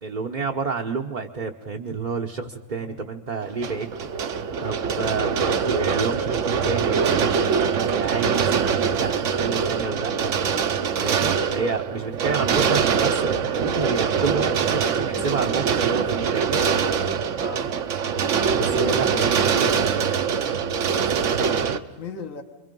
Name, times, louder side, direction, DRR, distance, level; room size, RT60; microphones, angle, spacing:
voice 1, 0.0-3.9 4.6-7.5 7.9-10.3 11.0-16.6 18.5-20.2, right 4 dB, 35° right, 1 dB, 0.9 m, -29 dB
sound 1, 3.4-21.8, right 6 dB, 60° right, 1.2 m, -23 dB
voice 2, 17.3-17.7 20.9-22.4, left 5 dB, 60° left, 4 dB, 1.8 m, -38 dB
28.5 x 23.0 x 5.3 m, 1.3 s
omnidirectional pair, 1.5 m